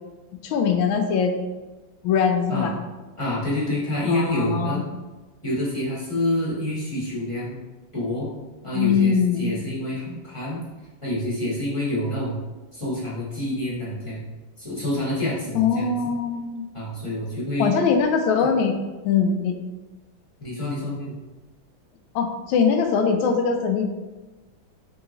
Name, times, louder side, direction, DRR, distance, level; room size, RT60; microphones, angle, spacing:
voice 1, 0.4-1.3 2.0-2.7 4.1-4.8 8.7-9.5 15.5-16.7 17.6-18.8 19.0-19.6 22.1-23.9, left 6 dB, 85° left, 5 dB, 1.4 m, -22 dB
voice 2, 3.2-4.8 5.4-7.6 7.9-8.3 8.6-10.6 11.0-12.4 12.7-14.2 14.6-16.2 16.7-17.7 18.4-18.5 20.4-21.1, left 1 dB, 20° left, -9 dB, 1.0 m, -27 dB
3.8 x 2.9 x 3.8 m, 1.2 s
omnidirectional pair, 2.1 m